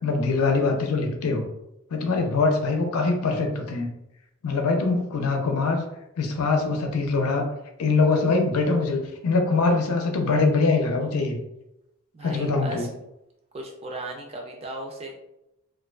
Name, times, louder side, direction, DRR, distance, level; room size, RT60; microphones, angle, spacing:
voice 1, 0.0-1.5 1.9-3.9 4.4-5.8 6.2-7.5 7.8-11.4 12.2-12.9, left 3 dB, 85° left, 4 dB, 0.5 m, -23 dB
voice 2, 12.1-12.9 13.5-15.2, right 2 dB, 25° right, 1 dB, 0.3 m, -36 dB
2.3 x 2.3 x 2.2 m, 0.86 s
head